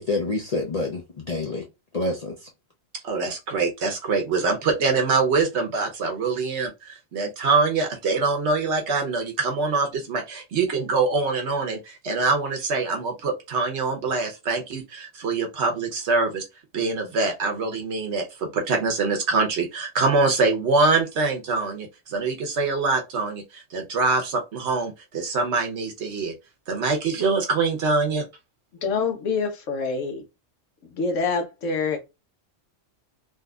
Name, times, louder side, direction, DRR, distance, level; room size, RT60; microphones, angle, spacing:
voice 1, 0.0-1.6 1.9-2.5, left 2 dB, 45° left, 0.5 m, -27 dB
voice 2, 3.0-16.4 16.7-26.3 26.7-28.3, right 3 dB, 65° right, 1.0 m, -24 dB
voice 3, 28.8-30.2 30.8-32.0, left 4 dB, 75° left, 1.1 m, -26 dB
3.6 x 2.6 x 2.3 m
omnidirectional pair, 1.3 m